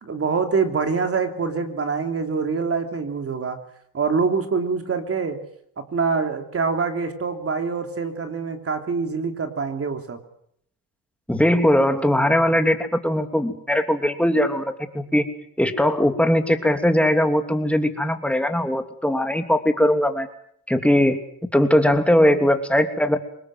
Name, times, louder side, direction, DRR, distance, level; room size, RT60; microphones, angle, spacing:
voice 1, 0.0-3.6 3.9-5.4 5.8-10.2, right 5 dB, 35° right, 6 dB, 3.3 m, -25 dB
voice 2, 11.3-15.2 15.6-20.3 20.7-21.2 21.5-23.2, left 1 dB, 5° left, 6 dB, 2.9 m, -20 dB
24.5 x 20.5 x 7.9 m, 0.70 s
cardioid pair, 95°, 39 cm